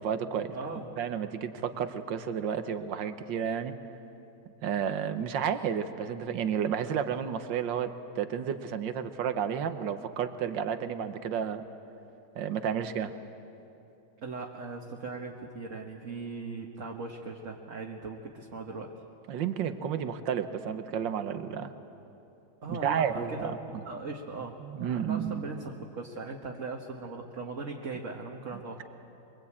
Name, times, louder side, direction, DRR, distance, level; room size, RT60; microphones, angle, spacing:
voice 1, 0.0-0.5 1.0-3.7 4.6-11.6 12.4-13.1 19.3-21.7 22.7-23.6 24.6-25.4 28.5-28.6, right 8 dB, 85° right, 10 dB, 1.7 m, -31 dB
voice 2, 0.5-0.9 14.2-18.9 22.6-23.5 23.8-28.8, right 3 dB, 45° right, 0 dB, 1.7 m, -39 dB
23.5 x 23.5 x 8.7 m, 2.8 s
omnidirectional pair, 1.9 m